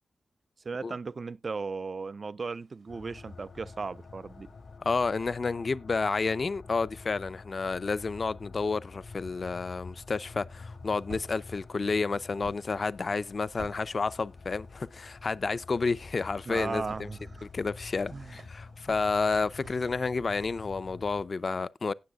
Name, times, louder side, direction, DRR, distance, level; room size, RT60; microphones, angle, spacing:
voice 1, 0.6-4.5 16.5-17.5 18.1-18.4 18.9-19.0, right 4 dB, 50° right, 0.4 m, -36 dB
sound 1, 2.4-4.8 10.5-20.7, right 4 dB, 75° right, 1.4 m, -54 dB
sound 2, 2.9-21.2, left 4 dB, 85° left, 1.7 m, -48 dB
voice 2, 4.9-17.1 17.4-21.9, left 4 dB, 50° left, 0.5 m, -30 dB
17.5 x 6.9 x 2.3 m
wide cardioid pair, 80°, 0 cm